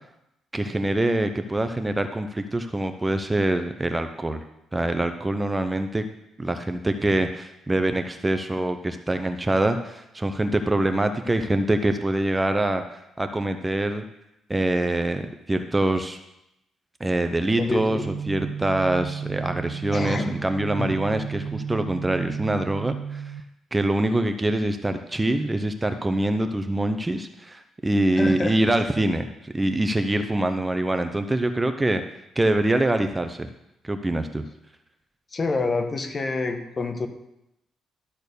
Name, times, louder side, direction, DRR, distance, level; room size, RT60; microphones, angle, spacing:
voice 1, 0.5-4.4 4.7-6.0 6.4-14.0 14.5-16.2 17.0-23.2 23.7-32.0 32.4-33.5 33.8-34.4, right 1 dB, 15° right, 8 dB, 0.6 m, -24 dB
voice 2, 17.6-18.0 19.9-20.3 20.8-20.9 28.2-28.6 35.3-37.1, left 3 dB, 35° left, 7 dB, 1.2 m, -27 dB
sound 1, 17.9-23.4, right 7 dB, 60° right, 0.4 m, -33 dB
12.5 x 4.4 x 6.8 m, 0.86 s
cardioid pair, 90°, 0 cm